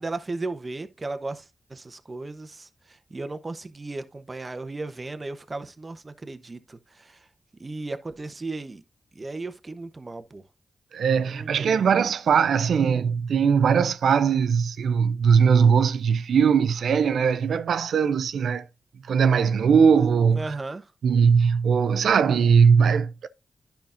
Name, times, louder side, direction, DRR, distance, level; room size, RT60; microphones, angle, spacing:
voice 1, 0.0-7.3 7.6-8.8 9.1-10.4 11.1-11.9 20.3-20.9, right 3 dB, 35° right, 0.9 m, -36 dB
voice 2, 10.9-18.6 19.1-20.4 21.0-23.3, right 6 dB, 85° right, 0.4 m, -20 dB
10.5 x 5.7 x 2.6 m
cardioid pair, 55°, 0 cm